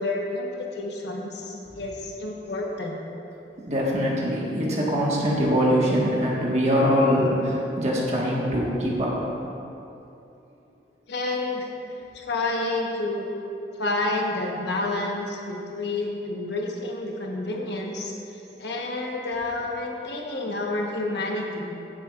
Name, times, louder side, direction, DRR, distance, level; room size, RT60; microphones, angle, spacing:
voice 1, 0.0-3.0 11.1-11.7 12.1-13.3 13.8-18.1 18.6-21.7, left 2 dB, 75° left, -1 dB, 1.2 m, -29 dB
voice 2, 3.7-9.1, equal, 40° right, -4 dB, 1.6 m, -23 dB
16.0 x 7.4 x 2.5 m, 2.8 s
head